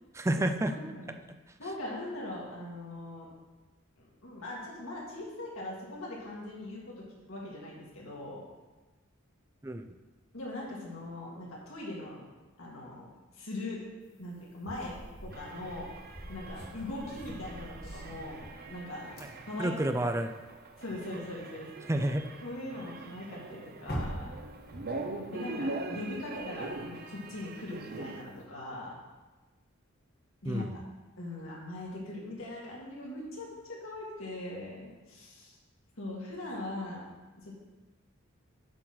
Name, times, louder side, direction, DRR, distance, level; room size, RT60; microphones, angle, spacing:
voice 1, 0.1-0.7 9.6-9.9 19.2-19.3 19.6-20.3 21.9-22.3 30.4-30.7, right 1 dB, 15° right, 7 dB, 0.5 m, -29 dB
voice 2, 0.7-1.1 1.6-3.3 4.0-8.4 10.3-12.2 12.6-13.0 13.3-13.8 14.2-15.9 16.3-18.4 18.7-19.1 19.5-20.0 20.8-21.7 22.4-24.4 25.3-28.9 30.4-30.8 31.2-35.6 36.0-37.1 37.4-37.5, left 1 dB, 80° left, -3 dB, 2.3 m, -41 dB
sound 1, 14.1-21.2 21.5-21.6 22.0-22.5 22.9-23.0 23.2-28.4, equal, 50° left, 1.6 m, -45 dB
sound 2, 15.3-28.2, right 2 dB, 50° right, 0.7 m, -43 dB
8.8 x 4.4 x 6.1 m, 1.2 s
head